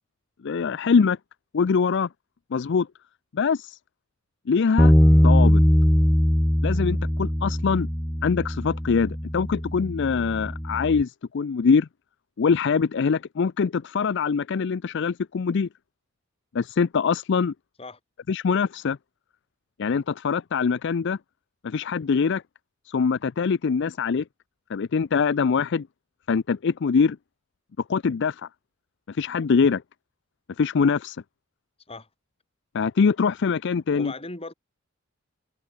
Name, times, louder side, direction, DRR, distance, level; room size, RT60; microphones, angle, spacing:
voice 1, 0.4-1.2 1.5-2.1 2.5-2.9 3.3-3.8 4.5-4.9 5.2-5.6 6.6-7.9 8.2-11.9 12.4-15.7 16.5-17.5 18.3-19.0 19.8-21.2 21.6-22.4 22.9-24.2 24.7-25.9 26.3-27.2 27.9-28.5 29.1-29.8 30.6-31.2 32.7-34.1, left 5 dB, 60° left, 0.4 m, -23 dB
Bass guitar, 4.8-11.0, equal, 5° left, 0.8 m, -21 dB
voice 2, 33.9-34.5, left 2 dB, 30° left, 4.2 m, -37 dB
head